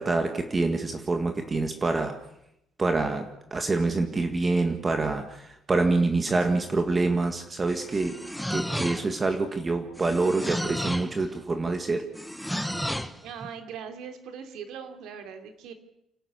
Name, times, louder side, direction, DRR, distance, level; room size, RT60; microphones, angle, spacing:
voice 1, 0.0-2.2 2.8-8.2 8.5-12.1, right 3 dB, 25° right, 6 dB, 1.8 m, -26 dB
sound 1, 7.7-9.3 9.9-11.2 12.1-13.2, equal, ahead, 1.2 m, -32 dB
voice 2, 13.2-15.7, right 7 dB, 80° right, 6 dB, 3.1 m, -40 dB
28.0 x 12.5 x 8.2 m, 0.82 s
cardioid pair, 115°, 0 cm